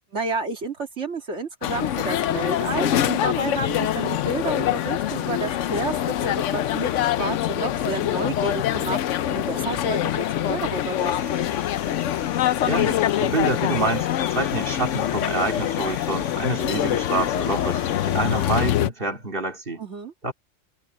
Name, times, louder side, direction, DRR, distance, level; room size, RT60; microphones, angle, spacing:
voice 1, 0.1-11.4 19.8-20.1, right 3 dB, 65° right, 2.6 m, -30 dB
sound 1, 1.6-18.9, left 11 dB, 75° left, 1.0 m, -24 dB
sound 2, 11.0-18.6, left 2 dB, 60° left, 3.3 m, -44 dB
voice 2, 12.6-19.8 20.2-20.3, right 3 dB, 45° right, 3.0 m, -27 dB
omnidirectional pair, 1.3 m